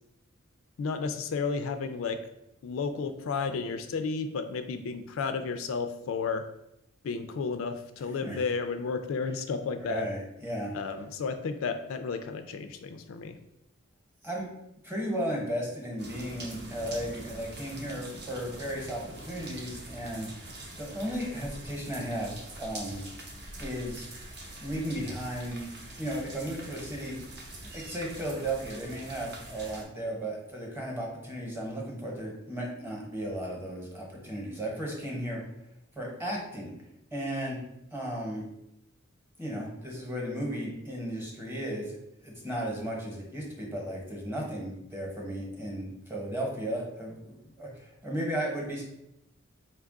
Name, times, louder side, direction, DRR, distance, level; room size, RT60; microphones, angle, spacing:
voice 1, 0.8-2.2 2.6-6.4 7.0-10.1 10.7-13.4, left 5 dB, 75° left, 8 dB, 0.3 m, -32 dB
voice 2, 9.9-10.7 14.2-14.4 14.8-20.3 20.8-23.0 23.6-24.1 24.6-25.6 26.0-27.2 27.7-35.4 36.0-36.7 37.1-37.6 37.9-38.4 39.4-42.0 42.2-48.8, right 1 dB, 10° right, -2 dB, 1.0 m, -35 dB
sound 1, 16.0-29.8, right 1 dB, 55° right, 0.8 m, -44 dB
4.4 x 2.3 x 3.6 m, 0.85 s
head